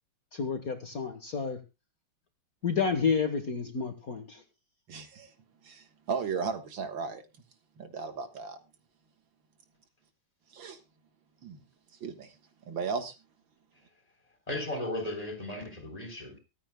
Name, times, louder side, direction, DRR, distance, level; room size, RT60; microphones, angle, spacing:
voice 1, 0.3-1.6 2.6-4.4, left 5 dB, 45° left, 7 dB, 1.6 m, -30 dB
voice 2, 4.9-5.3 5.6-7.2 7.8-8.6 10.5-10.8 11.4-11.6 12.0-12.4 12.7-13.1, right 5 dB, 70° right, 7 dB, 2.1 m, -35 dB
voice 3, 14.5-16.4, left 1 dB, 15° left, 4 dB, 3.6 m, -35 dB
23.5 x 9.0 x 2.2 m, 0.27 s
omnidirectional pair, 2.3 m